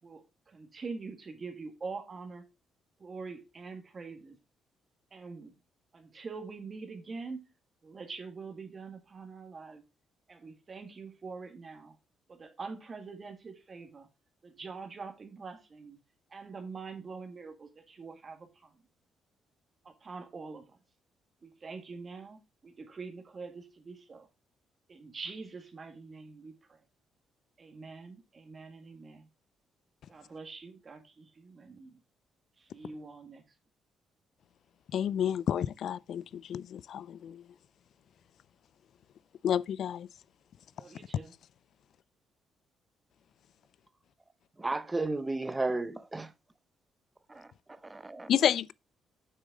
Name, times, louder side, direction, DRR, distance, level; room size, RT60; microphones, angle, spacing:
voice 1, 0.0-2.4 3.0-4.4 5.1-5.5 5.9-7.4 7.8-9.8 10.3-12.0 12.3-14.1 14.4-16.0 16.3-18.8 19.8-20.8 21.4-24.3 24.9-26.8 27.6-29.3 30.1-32.0 32.6-33.4 40.8-41.3, right 4 dB, 40° right, 1.9 m, -44 dB
voice 2, 34.9-37.4 39.4-40.1 48.3-48.7, left 9 dB, 65° left, 0.4 m, -30 dB
voice 3, 44.6-46.3 47.3-47.5 47.8-48.3, right 2 dB, 20° right, 0.6 m, -33 dB
7.5 x 6.4 x 3.7 m
cardioid pair, 90°, 0 cm